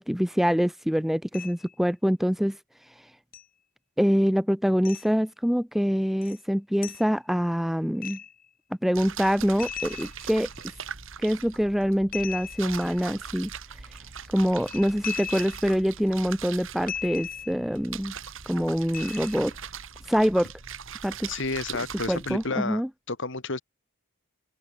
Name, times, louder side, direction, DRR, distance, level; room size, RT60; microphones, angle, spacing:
voice 1, 0.0-2.6 4.0-8.2 8.8-10.5 11.2-13.5 14.3-18.1 18.5-19.5 20.1-20.5 21.0-21.3 22.1-22.9, equal, ahead, 0.4 m, -25 dB
sound 1, 1.3-1.7 3.3-3.4 4.8-5.1 6.2-6.4 6.8-7.1 8.0-8.4 9.6-10.6 12.1-13.0 14.6-15.8 16.9-17.7 18.9-19.5, left 8 dB, 40° left, 2.0 m, -38 dB
sound 2, 8.9-22.5, right 7 dB, 65° right, 2.4 m, -41 dB
voice 2, 21.3-22.8 23.1-23.6, left 3 dB, 60° left, 2.7 m, -31 dB
open air
head